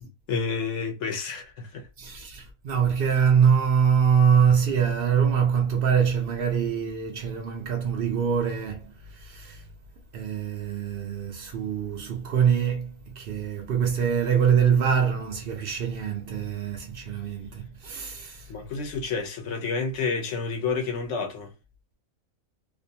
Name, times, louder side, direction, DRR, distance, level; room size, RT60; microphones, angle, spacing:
voice 1, 0.0-1.9 18.5-21.5, left 5 dB, 65° left, 0.8 m, -30 dB
voice 2, 2.0-9.6 10.1-18.5, right 7 dB, 70° right, 0.5 m, -24 dB
2.5 x 2.1 x 2.7 m
omnidirectional pair, 1.5 m